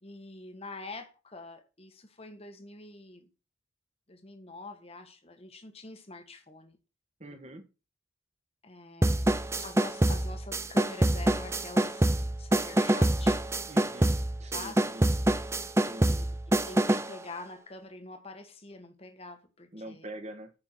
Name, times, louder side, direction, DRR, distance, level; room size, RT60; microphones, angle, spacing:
voice 1, 0.0-3.3 4.1-6.8 8.6-13.4 14.5-14.9 16.0-16.3 16.7-20.1, left 2 dB, 30° left, 1.5 m, -45 dB
voice 2, 7.2-7.6 13.7-14.1 14.4-15.1 15.7-16.2 19.7-20.5, right 1 dB, 35° right, 1.9 m, -44 dB
sound 1, 9.0-17.2, right 1 dB, 15° right, 0.6 m, -26 dB
14.0 x 5.8 x 4.6 m
head